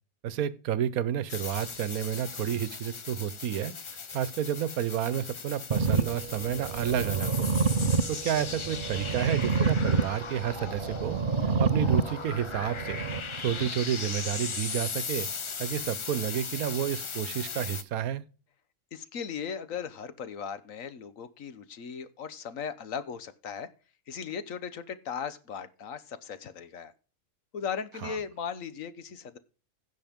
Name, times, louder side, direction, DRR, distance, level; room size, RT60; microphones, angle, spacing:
voice 1, 0.2-3.7 4.1-7.5 8.1-11.2 11.6-13.0 13.4-15.3 15.6-18.2 28.0-28.2, right 10 dB, 80° right, 1.2 m, -30 dB
sound 1, 1.3-17.8, left 5 dB, 50° left, 0.3 m, -38 dB
sound 2, 5.7-13.7, right 4 dB, 50° right, 0.7 m, -29 dB
voice 2, 18.9-23.7 24.1-26.9 27.5-29.4, left 7 dB, 65° left, 1.3 m, -37 dB
16.0 x 6.2 x 3.6 m
omnidirectional pair, 1.5 m